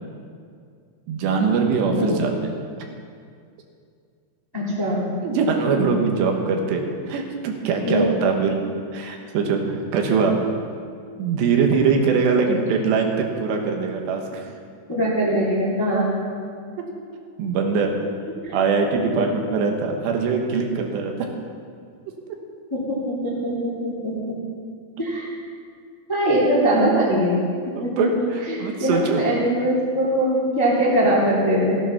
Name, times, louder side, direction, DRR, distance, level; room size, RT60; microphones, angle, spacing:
voice 1, 1.1-2.6 5.2-8.6 8.9-10.4 11.2-14.5 17.4-18.0 18.5-21.3 26.7-26.9 27.8-29.2, right 5 dB, 85° right, 2 dB, 3.5 m, -22 dB
voice 2, 4.5-5.0 7.8-8.4 14.9-16.1 18.4-18.5 19.2-19.3 22.7-24.4 25.0-25.3 26.1-27.4 27.8-28.1 28.5-31.8, equal, 5° left, -6 dB, 1.9 m, -22 dB
15.5 x 9.1 x 5.8 m, 2.2 s
omnidirectional pair, 4.9 m